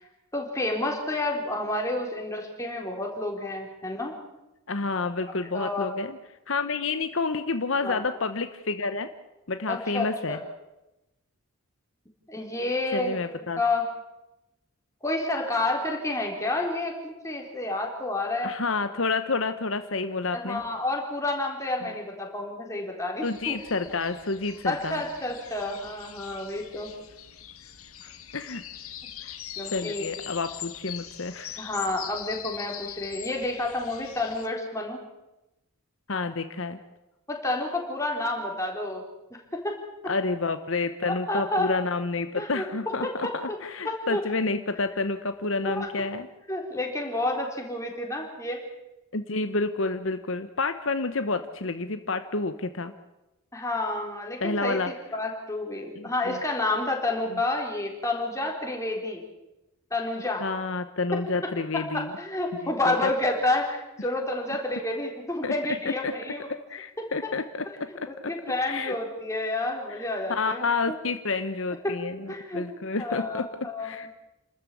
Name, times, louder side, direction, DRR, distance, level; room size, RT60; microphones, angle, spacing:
voice 1, 0.3-4.2 5.4-5.9 7.8-8.0 9.7-10.4 12.3-13.2 13.6-13.8 15.0-18.5 20.3-23.6 24.7-26.9 29.6-30.1 31.6-35.0 37.3-39.0 39.3-39.8 40.0-40.1 41.0-41.7 42.4-42.7 43.0-43.6 43.8-44.2 45.6-45.9 46.5-48.6 53.5-59.2 59.9-60.5 61.1-61.2 61.7-66.5 68.1-71.0 71.8-71.9 72.3-72.6 72.9-73.9, left 2 dB, 15° left, 1 dB, 4.0 m, -30 dB
voice 2, 4.7-6.2 6.5-9.1 9.5-10.4 12.9-13.6 18.4-20.6 21.8-21.9 23.2-25.0 28.0-28.6 29.2-29.4 29.7-31.6 36.1-36.8 40.1-43.3 43.6-46.3 49.1-52.9 54.4-54.9 56.0-56.4 57.3-57.4 60.4-62.1 62.6-63.1 65.4-65.5 66.0-66.1 66.7-68.3 68.6-69.0 69.9-70.0 70.3-73.4 73.8-74.1, left 3 dB, 65° left, 9 dB, 1.0 m, -29 dB
sound 1, 23.2-34.5, left 11 dB, 90° left, 1.7 m, -42 dB
29.0 x 13.5 x 8.5 m, 0.98 s
head